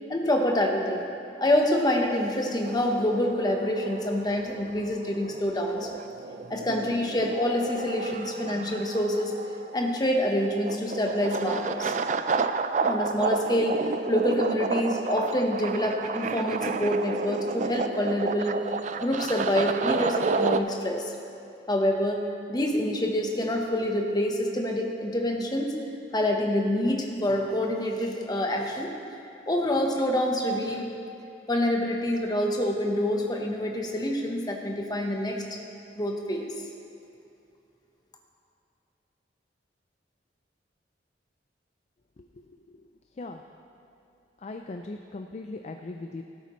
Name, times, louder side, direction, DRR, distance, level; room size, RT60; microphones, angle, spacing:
voice 1, 0.1-1.0 1.4-5.9 6.5-9.3 9.7-11.9 12.8-18.6 19.0-21.1 21.7-22.2 22.5-25.8 26.1-28.9 29.5-30.9 31.5-35.6 36.0-36.5, left 1 dB, 20° left, 1 dB, 1.0 m, -26 dB
sound 1, 2.6-20.6, right 4 dB, 40° right, 0.3 m, -31 dB
voice 2, 42.2-42.8 43.1-43.4 44.4-46.2, left 2 dB, 35° left, 5 dB, 0.4 m, -39 dB
17.5 x 8.4 x 3.1 m, 2.6 s
head